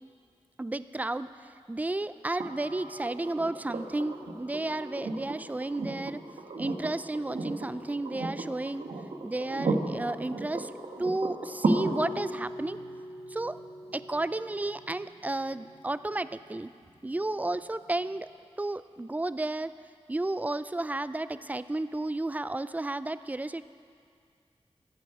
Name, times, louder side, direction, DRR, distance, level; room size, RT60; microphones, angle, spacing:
voice 1, 0.6-1.3 1.7-6.2 6.6-8.9 9.2-10.7 11.0-12.8 13.3-13.6 13.9-16.7 17.0-18.3 18.6-19.7 20.1-23.6, right 2 dB, 15° right, 14 dB, 0.4 m, -32 dB
sound 1, 2.4-16.3 18.1-18.2, right 2 dB, 85° right, 1.0 m, -35 dB
15.0 x 9.1 x 4.7 m, 2.2 s
wide cardioid pair, 60°, 11 cm